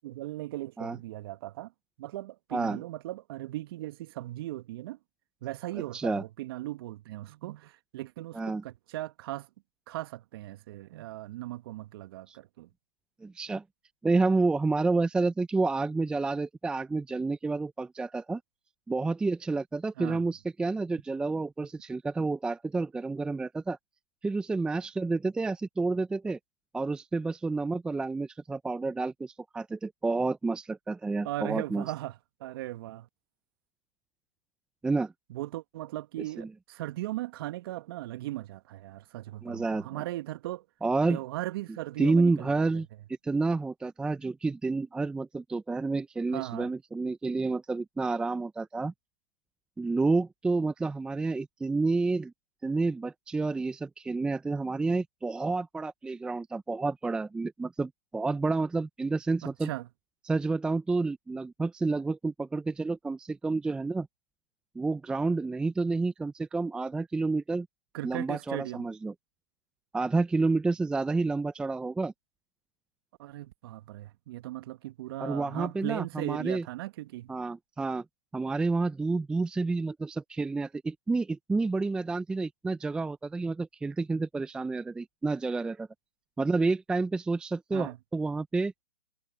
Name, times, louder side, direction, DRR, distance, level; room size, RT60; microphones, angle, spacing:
voice 1, 0.0-1.7 2.0-5.0 5.4-9.5 9.9-12.7 20.0-20.2 31.2-33.1 35.3-40.6 41.1-42.7 46.3-46.7 59.4-59.9 67.9-68.9 73.2-77.3 87.7-88.0, right 16 dB, 45° right, 1.9 m, -38 dB
voice 2, 5.9-6.2 8.3-8.6 12.3-12.4 13.2-13.6 14.0-18.4 18.9-23.8 24.2-26.4 26.7-31.8 34.8-35.1 36.4-36.5 39.4-39.9 40.8-41.2 42.0-42.9 43.2-48.9 49.8-52.3 52.6-59.7 60.3-64.1 64.8-67.7 68.0-69.1 69.9-72.1 75.2-76.6 77.3-78.0 78.3-85.9 86.4-88.7, right 3 dB, 5° right, 0.6 m, -29 dB
hypercardioid pair, 135°, 18 cm